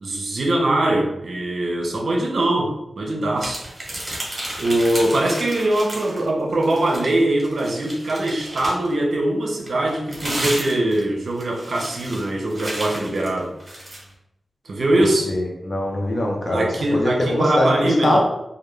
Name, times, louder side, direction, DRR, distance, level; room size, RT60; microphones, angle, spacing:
voice 1, 0.0-3.7 4.6-13.5 14.7-15.3 16.5-18.2, right 1 dB, 70° right, 0 dB, 0.5 m, -22 dB
sound 1, 3.4-6.3 6.6-8.9 9.6-14.0, right 1 dB, 35° right, 0.9 m, -32 dB
voice 2, 15.3-18.2, left 1 dB, 40° left, -1 dB, 0.6 m, -22 dB
2.2 x 2.1 x 3.0 m, 0.85 s
wide cardioid pair, 120°, 0 cm